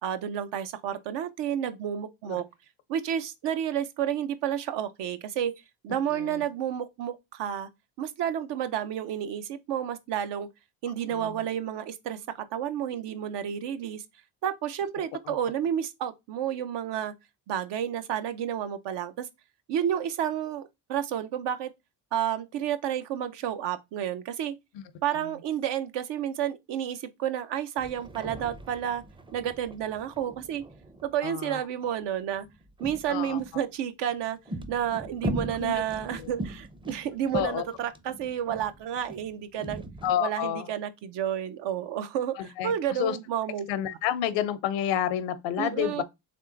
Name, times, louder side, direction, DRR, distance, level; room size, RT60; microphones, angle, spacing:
voice 1, 0.0-2.5 2.9-7.7 8.0-10.5 10.8-12.2 12.5-14.0 14.4-17.1 17.5-19.3 19.7-21.7 22.1-24.5 25.0-29.0 29.3-30.6 31.0-32.5 32.8-34.4 34.7-39.8 40.2-43.7 45.6-46.0, right 9 dB, 70° right, 0.7 m, -31 dB
sound 1, 27.8-31.3 31.8-33.6 34.1-40.1, right 1 dB, 10° right, 0.5 m, -39 dB
voice 2, 31.2-31.6 33.1-33.4 35.6-35.7 37.3-37.6 40.0-40.7 42.4-42.7 43.0-43.2 43.7-46.0, left 10 dB, 85° left, 0.7 m, -29 dB
3.6 x 3.3 x 3.8 m
cardioid pair, 90°, 43 cm